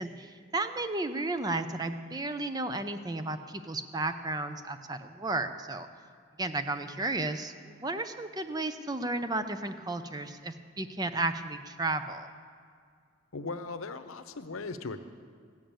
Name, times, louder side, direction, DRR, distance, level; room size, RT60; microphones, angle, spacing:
voice 1, 0.0-5.9 6.4-12.3, right 2 dB, 20° right, 9 dB, 0.5 m, -33 dB
voice 2, 13.3-15.0, left 3 dB, 85° left, 10 dB, 0.8 m, -38 dB
15.0 x 7.1 x 8.9 m, 2.1 s
head